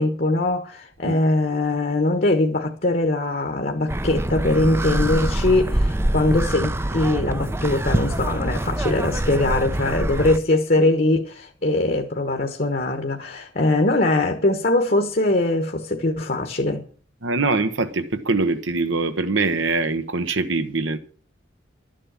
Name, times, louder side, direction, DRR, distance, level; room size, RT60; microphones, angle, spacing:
voice 1, 0.0-16.8, left 2 dB, 45° left, 1.2 m, -21 dB
sound 1, 3.9-10.4, right 1 dB, 10° right, 0.5 m, -24 dB
voice 2, 17.2-21.0, right 3 dB, 75° right, 1.1 m, -23 dB
12.0 x 7.6 x 7.4 m
head